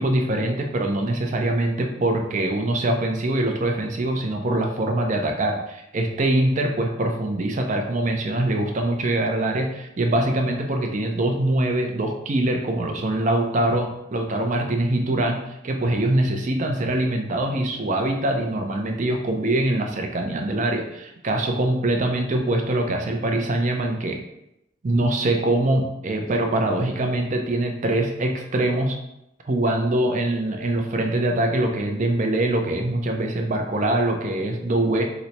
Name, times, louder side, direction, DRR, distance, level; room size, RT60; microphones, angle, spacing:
voice 1, 0.0-24.2 24.8-29.0 29.5-35.0, right 1 dB, 35° right, 3 dB, 0.4 m, -23 dB
2.9 x 2.1 x 4.0 m, 0.84 s
head